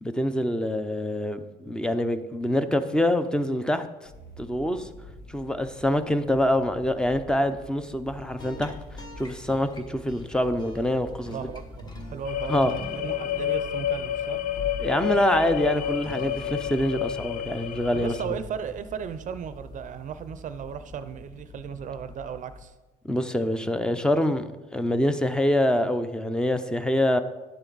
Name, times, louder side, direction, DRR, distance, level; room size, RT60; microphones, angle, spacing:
voice 1, 0.0-3.9 4.4-4.9 5.3-8.7 9.2-11.4 12.5-12.7 14.8-18.1 23.1-27.2, left 1 dB, 5° left, 10 dB, 0.6 m, -25 dB
sound 1, 4.0-22.7, left 2 dB, 75° left, 1.8 m, -45 dB
sound 2, 8.0-21.6, equal, 25° left, 1.2 m, -46 dB
voice 2, 11.3-11.6 12.0-14.4 17.9-22.7, right 7 dB, 50° right, 11 dB, 0.6 m, -36 dB
sound 3, 12.2-18.2, left 11 dB, 50° left, 0.4 m, -30 dB
11.0 x 7.9 x 4.0 m, 1.1 s
cardioid pair, 110°, 17 cm